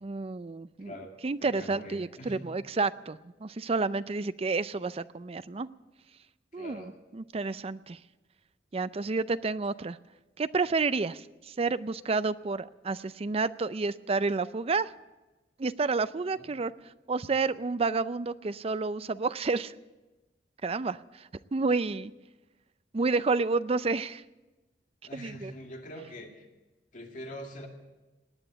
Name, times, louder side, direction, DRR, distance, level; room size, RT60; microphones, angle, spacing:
voice 1, 0.0-0.9 1.2-5.7 6.5-8.0 8.7-10.0 10.4-14.9 15.6-16.7 17.1-19.7 20.6-22.1 22.9-24.2 25.1-25.5, right 4 dB, 35° right, 14 dB, 0.5 m, -30 dB
voice 2, 0.8-1.1 1.4-2.4 6.5-6.9 16.3-16.5 25.1-26.5 26.9-27.7, equal, 50° left, 2 dB, 2.3 m, -44 dB
19.0 x 9.0 x 8.2 m, 1.1 s
head